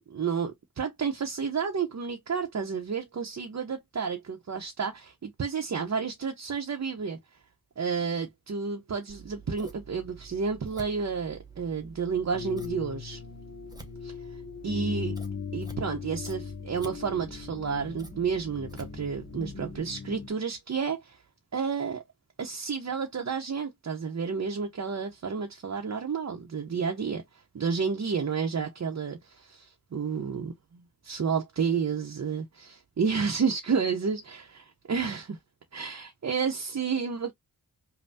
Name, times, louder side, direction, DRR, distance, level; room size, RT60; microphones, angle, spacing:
voice 1, 0.1-7.2 7.8-13.2 14.0-14.1 14.6-15.2 15.5-21.2 21.5-22.0 22.4-35.4 35.7-37.3, right 5 dB, 50° right, 0.8 m, -31 dB
Scissors, 9.1-19.8, right 4 dB, 10° right, 0.8 m, -49 dB
sound 1, 12.3-20.3, left 6 dB, 40° left, 0.6 m, -39 dB
5.4 x 2.2 x 2.7 m
wide cardioid pair, 125°, 35 cm